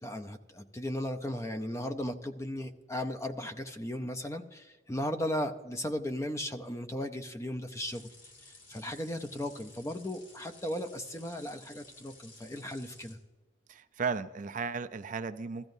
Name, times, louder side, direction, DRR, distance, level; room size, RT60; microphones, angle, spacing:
voice 1, 0.0-8.0 8.7-13.2, left 1 dB, 15° left, 8 dB, 0.6 m, -36 dB
sound 1, 7.7-13.2, left 2 dB, 80° left, 2.4 m, -55 dB
voice 2, 13.7-15.7, right 5 dB, 45° right, 11 dB, 0.4 m, -35 dB
15.5 x 14.0 x 2.6 m, 1.2 s
head